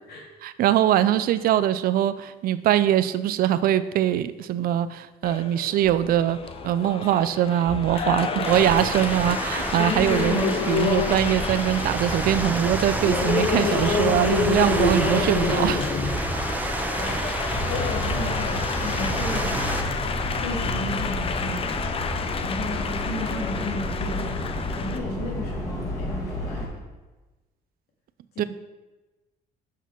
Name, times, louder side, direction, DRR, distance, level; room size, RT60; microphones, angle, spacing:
voice 1, 0.4-6.4 6.6-15.8 28.4-28.5, right 11 dB, 60° right, 14 dB, 0.4 m, -22 dB
Applause, 5.2-25.0, left 6 dB, 35° left, 0.6 m, -29 dB
sound 1, 8.4-19.8, right 1 dB, 10° right, 0.8 m, -29 dB
sound 2, 17.5-26.7, left 1 dB, 20° left, 2.0 m, -31 dB
voice 2, 17.7-19.6 20.4-21.7 22.4-24.4 24.7-26.8 28.4-28.5, left 1 dB, 75° left, -1 dB, 2.1 m, -34 dB
5.9 x 5.8 x 4.5 m, 1.2 s
cardioid pair, 110°, 17 cm